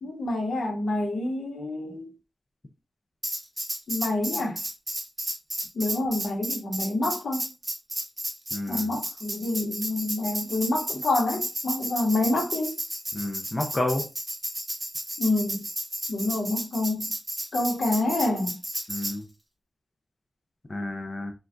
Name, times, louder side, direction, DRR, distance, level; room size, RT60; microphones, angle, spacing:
voice 1, 0.0-2.1 3.9-4.6 5.7-7.5 8.7-12.7 15.2-15.6 16.1-17.1 17.5-18.6, left 2 dB, 75° left, 0.8 m, -27 dB
Tambourine, 3.2-19.2, right 1 dB, 10° right, 0.6 m, -33 dB
voice 2, 8.5-8.9 13.1-14.0 18.9-19.3 20.7-21.3, left 1 dB, 20° left, 0.4 m, -30 dB
3.3 x 2.2 x 2.4 m
wide cardioid pair, 165°, 0 cm